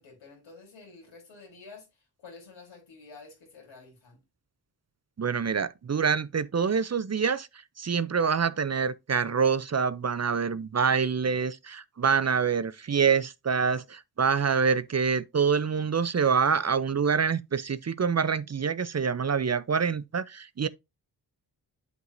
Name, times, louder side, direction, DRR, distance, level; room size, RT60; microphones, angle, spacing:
voice 1, 0.0-4.2, left 4 dB, 85° left, 4.3 m, -50 dB
voice 2, 5.2-7.5 7.8-20.7, right 6 dB, 35° right, 0.6 m, -26 dB
7.9 x 7.8 x 2.6 m
cardioid pair, 45°, 45 cm